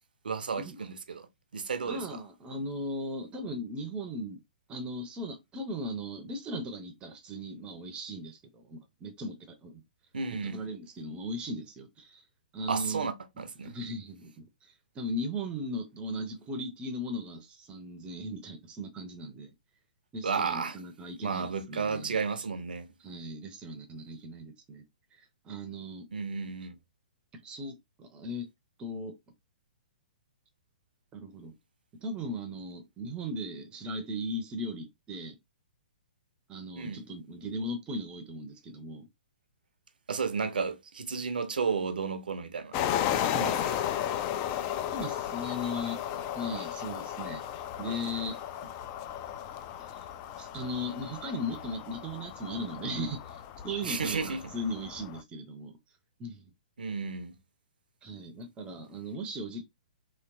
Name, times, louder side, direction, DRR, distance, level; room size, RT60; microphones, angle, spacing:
voice 1, 0.2-1.3 1.5-2.0 10.1-10.6 12.7-13.8 20.2-20.8 21.2-22.9 26.1-26.8 36.8-37.0 40.1-42.8 43.4-43.7 53.8-54.4 56.8-57.4, right 5 dB, 70° right, 0.6 m, -33 dB
voice 2, 1.8-4.4 4.7-9.8 10.4-12.2 12.5-13.1 13.6-19.5 20.1-22.2 23.0-24.8 25.2-26.1 27.3-28.5 28.8-29.1 31.1-31.6 31.9-35.4 36.5-39.1 43.0-43.5 44.9-47.4 47.8-48.7 49.8-50.1 50.4-55.7 56.2-56.5 58.0-59.6, equal, 20° right, 0.6 m, -38 dB
sound 1, 42.7-55.2, left 10 dB, 30° left, 0.3 m, -35 dB
3.1 x 2.9 x 2.5 m
figure-of-eight pair, 120°, 5 cm